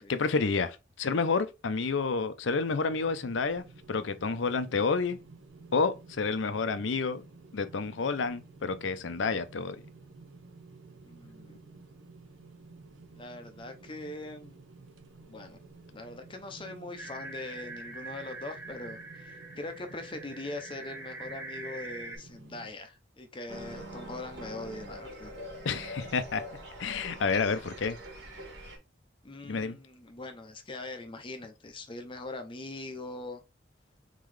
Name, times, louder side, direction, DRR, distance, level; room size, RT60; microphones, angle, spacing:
voice 1, 0.1-5.2 5.7-7.2 7.5-9.8 25.6-26.4 26.8-28.0 29.4-29.8, left 4 dB, 75° left, 0.6 m, -29 dB
sound 1, 2.8-22.7, right 3 dB, 85° right, 0.7 m, -53 dB
voice 2, 11.0-11.8 13.1-14.6 15.3-15.6 15.9-25.3 29.2-33.4, left 2 dB, 25° left, 0.6 m, -42 dB
sound 2, 17.0-22.2, right 2 dB, 15° right, 1.6 m, -44 dB
sound 3, 23.5-28.8, equal, 60° right, 1.6 m, -44 dB
3.8 x 3.6 x 3.3 m
head